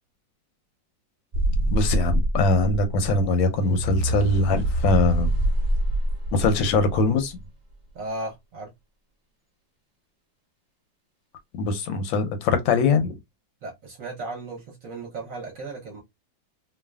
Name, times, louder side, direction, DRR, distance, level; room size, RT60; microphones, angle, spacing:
sound 1, 1.3-7.4, right 1 dB, 25° right, 1.2 m, -25 dB
voice 1, 1.7-5.3 6.3-7.4 11.6-13.2, left 3 dB, 80° left, 1.3 m, -22 dB
voice 2, 7.9-8.7 13.6-16.0, right 2 dB, 55° right, 1.0 m, -35 dB
3.2 x 2.2 x 2.3 m
omnidirectional pair, 2.1 m